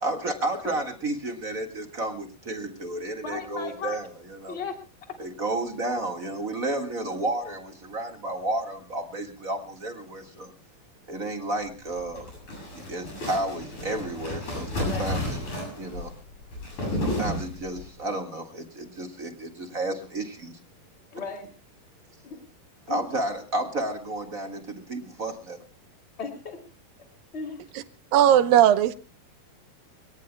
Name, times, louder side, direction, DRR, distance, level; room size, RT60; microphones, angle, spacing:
voice 1, 0.0-4.6 5.2-10.5 11.1-12.3 12.9-15.4 15.8-16.1 16.9-20.6 22.9-25.6, right 2 dB, 35° right, 1.5 m, -32 dB
voice 2, 3.2-4.0 4.5-4.7 6.7-7.1 14.9-15.1 21.1-21.5 22.2-22.4 22.9-23.0 26.2-26.6 27.3-27.6, left 5 dB, 20° left, 2.9 m, -35 dB
sound 1, 11.8-17.9, left 1 dB, 55° left, 9.5 m, -32 dB
voice 3, 28.1-28.9, right 11 dB, 80° right, 2.6 m, -17 dB
27.5 x 18.0 x 2.2 m
omnidirectional pair, 4.1 m